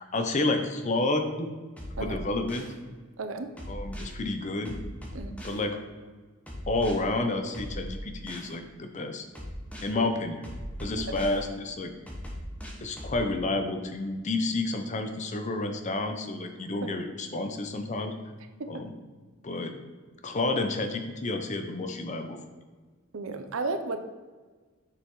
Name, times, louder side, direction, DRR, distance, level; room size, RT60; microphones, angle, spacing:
voice 1, 0.0-1.5 2.0-2.7 3.7-4.8 5.4-5.8 6.7-9.3 9.8-10.4 10.8-11.9 12.8-18.1 18.7-18.9 19.4-19.7 20.2-22.4, left 2 dB, 35° left, 6 dB, 0.6 m, -30 dB
sound 1, 1.8-2.7 3.6-4.1 4.7-5.6 6.5-6.9 7.5-8.5 9.4-9.9 10.4-11.4 12.1-13.2, equal, 5° left, 1.0 m, -39 dB
voice 2, 3.2-3.5 5.1-5.3 9.9-10.0 11.0-11.1 16.8-16.9 18.6-18.8 23.1-24.0, right 3 dB, 75° right, 7 dB, 0.6 m, -33 dB
6.9 x 5.6 x 3.1 m, 1.4 s
head